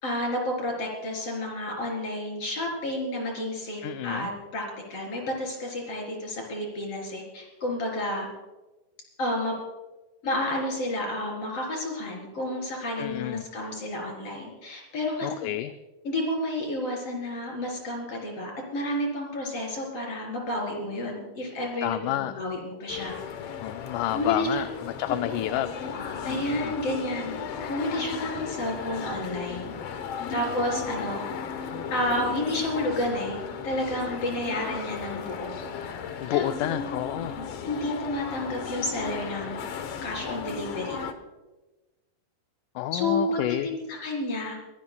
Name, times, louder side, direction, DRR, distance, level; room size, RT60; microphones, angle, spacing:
voice 1, 0.0-4.6 4.9-8.3 9.2-9.5 10.2-15.5 16.0-23.2 24.1-24.7 25.2-25.7 26.2-27.3 27.7-29.7 30.3-31.3 31.9-33.4 33.6-35.5 36.3-36.4 37.1-39.6 40.0-41.0 42.9-44.6, left 1 dB, 50° left, -1 dB, 5.1 m, -31 dB
voice 2, 3.8-4.3 13.0-13.4 15.2-15.7 21.8-22.4 23.6-25.7 26.3-26.7 36.2-37.3 42.8-43.7, left 14 dB, 80° left, 9 dB, 2.0 m, -29 dB
sound 1, 22.9-41.1, left 6 dB, 65° left, 1.7 m, -35 dB
23.0 x 18.0 x 2.3 m, 1.1 s
omnidirectional pair, 3.6 m